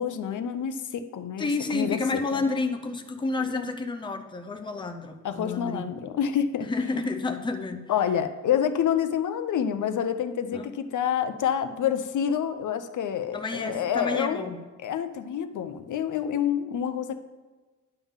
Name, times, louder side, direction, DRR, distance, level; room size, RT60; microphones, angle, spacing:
voice 1, 0.0-2.4 3.5-3.7 5.2-6.7 7.9-14.5 14.8-17.2, left 8 dB, 80° left, 10 dB, 0.6 m, -28 dB
voice 2, 1.4-5.8 6.7-7.9 10.5-10.7 13.3-14.6, left 3 dB, 15° left, 6 dB, 0.5 m, -30 dB
10.0 x 3.6 x 7.2 m, 1.3 s
wide cardioid pair, 175°, 30 cm